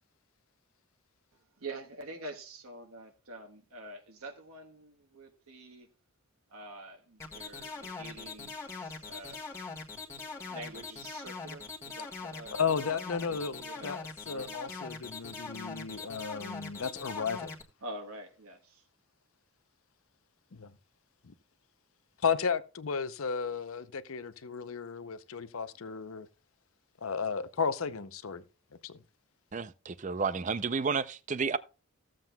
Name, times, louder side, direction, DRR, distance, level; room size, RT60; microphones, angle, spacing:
voice 1, 1.6-5.9 6.5-9.5 10.1-12.8 13.3-14.0 14.3-14.6 17.8-18.8, right 2 dB, 80° right, 1.3 m, -46 dB
sound 1, 7.2-17.6, left 4 dB, 15° left, 1.6 m, -42 dB
voice 2, 12.5-14.0 14.3-17.5 20.5-20.7 22.2-26.3 27.0-28.4 28.8-29.0, left 6 dB, 70° left, 0.7 m, -34 dB
voice 3, 29.5-31.6, right 5 dB, 35° right, 0.5 m, -31 dB
15.5 x 7.5 x 2.3 m
head